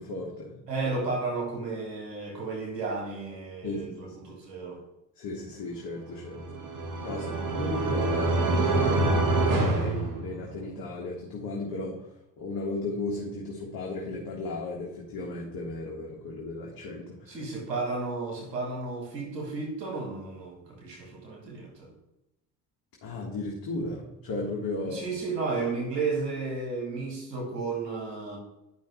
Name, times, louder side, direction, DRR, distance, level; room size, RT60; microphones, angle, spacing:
voice 1, 0.0-0.6 3.6-4.3 5.1-6.6 7.0-17.4 23.0-25.0, left 2 dB, 45° left, 1.8 m, -35 dB
voice 2, 0.7-4.8 7.1-7.3 17.3-21.9 24.9-28.4, right 3 dB, 85° right, 2.0 m, -33 dB
sound 1, 6.2-10.8, right 2 dB, 40° right, 1.5 m, -26 dB
10.5 x 5.5 x 3.2 m
figure-of-eight pair, 50°, 48 cm